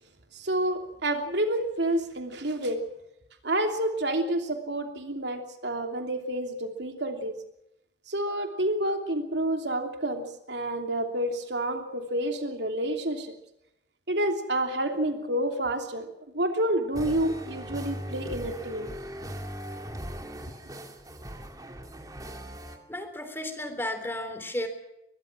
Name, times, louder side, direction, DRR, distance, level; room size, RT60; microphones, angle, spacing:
voice 1, 0.3-2.8 3.4-7.3 8.1-13.3 14.1-16.1 16.3-18.9, right 1 dB, 75° right, 5 dB, 3.0 m, -29 dB
sound 1, 16.9-22.8, equal, 20° right, 2.4 m, -39 dB
voice 2, 22.9-24.7, left 1 dB, 15° left, 8 dB, 3.4 m, -33 dB
23.0 x 21.5 x 6.2 m, 0.85 s
head